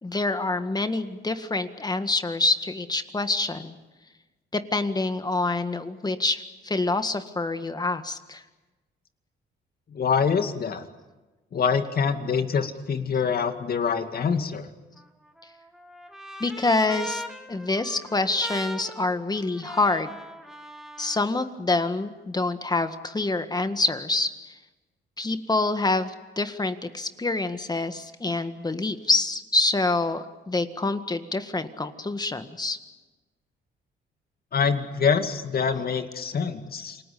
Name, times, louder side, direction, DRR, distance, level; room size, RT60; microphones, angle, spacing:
voice 1, 0.0-3.8 4.5-8.4 16.4-17.2 17.5-20.2 21.0-24.6 25.2-32.8, left 2 dB, 20° left, 9 dB, 1.7 m, -26 dB
voice 2, 9.9-10.8 11.5-14.7 34.5-37.0, left 6 dB, 50° left, 7 dB, 2.3 m, -25 dB
Trumpet, 15.0-21.3, equal, ahead, 2.5 m, -40 dB
28.5 x 20.0 x 8.5 m, 1.2 s
cardioid pair, 90°, 20 cm